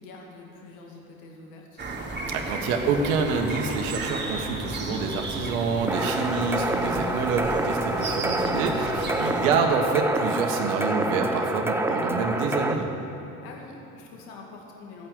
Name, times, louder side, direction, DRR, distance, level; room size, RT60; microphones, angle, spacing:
voice 1, 0.0-1.8 13.4-15.1, left 4 dB, 55° left, 0 dB, 2.4 m, -45 dB
sound 1, 1.8-9.5, right 2 dB, 25° right, 2.8 m, -33 dB
voice 2, 2.3-12.9, right 4 dB, 60° right, 3 dB, 1.4 m, -27 dB
sound 2, 5.9-12.7, right 2 dB, 5° right, 0.8 m, -27 dB
13.5 x 9.0 x 8.0 m, 2.9 s
figure-of-eight pair, 60°, 43 cm